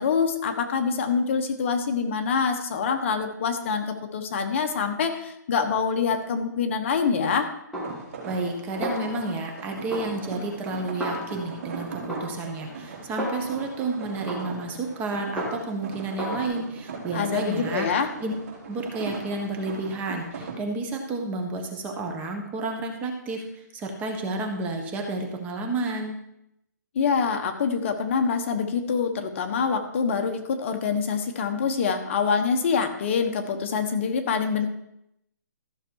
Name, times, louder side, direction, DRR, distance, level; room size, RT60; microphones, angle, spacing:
voice 1, 0.0-7.5 17.1-18.1 26.9-34.7, left 5 dB, 40° left, 6 dB, 1.3 m, -25 dB
Snare drum, 7.7-8.6 8.8-9.6 9.9-11.7 12.1-13.8 14.3-15.9 16.2-16.5, equal, ahead, 2.0 m, -34 dB
sound 1, 7.8-20.6, right 4 dB, 50° right, 3.6 m, -39 dB
voice 2, 8.2-17.9 18.2-18.3 18.7-26.2, right 2 dB, 15° right, 3 dB, 1.3 m, -31 dB
14.0 x 6.7 x 4.7 m, 0.80 s
hypercardioid pair, 160°, 10 cm